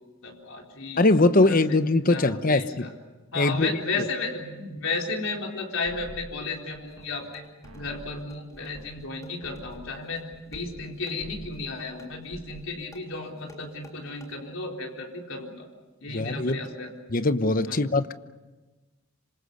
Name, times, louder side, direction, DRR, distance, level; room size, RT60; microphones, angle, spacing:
voice 1, 0.2-1.1 1.4-1.8 2.1-3.0 3.3-7.4 7.7-15.7 16.0-16.9 17.7-17.9, left 3 dB, 70° left, 4.1 m, -34 dB
voice 2, 1.0-2.9 3.3-3.7 16.1-16.6 17.1-18.1, left 2 dB, 40° left, 1.0 m, -22 dB
sound 1, 5.8-7.4 7.6-10.9 11.2-11.8 12.1-12.7, right 1 dB, 85° right, 1.9 m, -46 dB
sound 2, 6.9-14.3, left 2 dB, 15° left, 4.0 m, -52 dB
27.0 x 26.0 x 7.0 m
head